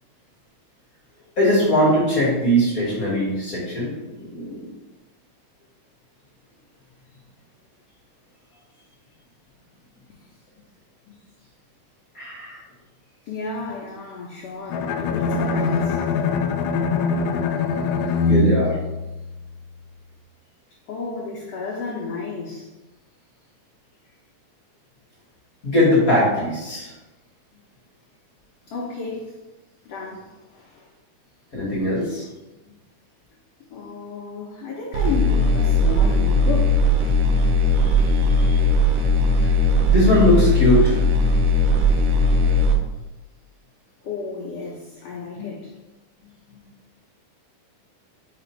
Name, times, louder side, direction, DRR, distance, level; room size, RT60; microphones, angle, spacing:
voice 1, 1.4-4.7 12.1-12.6 18.3-18.8 25.6-26.9 31.5-32.2 39.9-40.9, left 1 dB, 40° left, -5 dB, 1.3 m, -20 dB
voice 2, 13.3-16.0 18.0-18.2 20.9-22.7 28.7-29.3 29.8-30.9 33.7-36.8 37.1-37.2 44.0-45.7 46.2-46.7, left 4 dB, 70° left, -3 dB, 1.6 m, -32 dB
Bowed string instrument, 14.7-19.7, left 4 dB, 85° left, 2.2 m, -23 dB
sound 1, 34.9-42.7, left 1 dB, 80° right, 1.4 m, -18 dB
5.1 x 4.9 x 4.5 m, 1.0 s
omnidirectional pair, 3.8 m